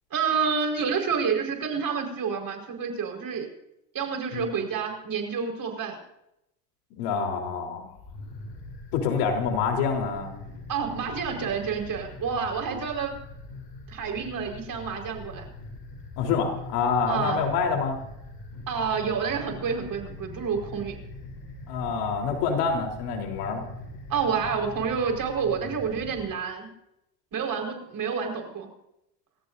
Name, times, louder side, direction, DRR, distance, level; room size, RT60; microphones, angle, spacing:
voice 1, 0.1-3.5 3.9-6.0 10.7-13.1 13.9-15.4 17.1-17.4 18.7-21.0 24.1-26.7 27.3-28.7, right 6 dB, 45° right, 3 dB, 5.0 m, -29 dB
voice 2, 7.0-7.9 8.9-10.4 16.2-18.0 21.7-23.7, left 5 dB, 80° left, 2 dB, 3.9 m, -26 dB
sound 1, 7.9-26.3, left 2 dB, 60° left, 7.4 m, -42 dB
28.5 x 15.0 x 2.7 m, 0.83 s
supercardioid pair, 90°, 47 cm